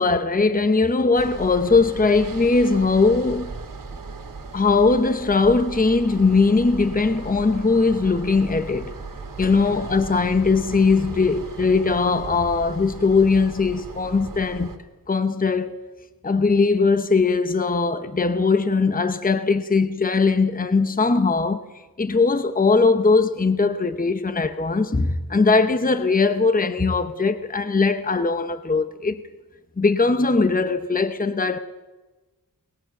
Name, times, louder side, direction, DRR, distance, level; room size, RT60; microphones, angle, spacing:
voice 1, 0.0-3.5 4.5-8.9 9.4-14.7 15.1-15.8 16.2-21.6 22.0-29.2 29.8-31.6, left 4 dB, 25° left, 0.9 m, -20 dB
sound 1, 1.1-14.8, right 4 dB, 65° right, 2.3 m, -37 dB
22.5 x 20.0 x 6.0 m
wide cardioid pair, 95°, 35 cm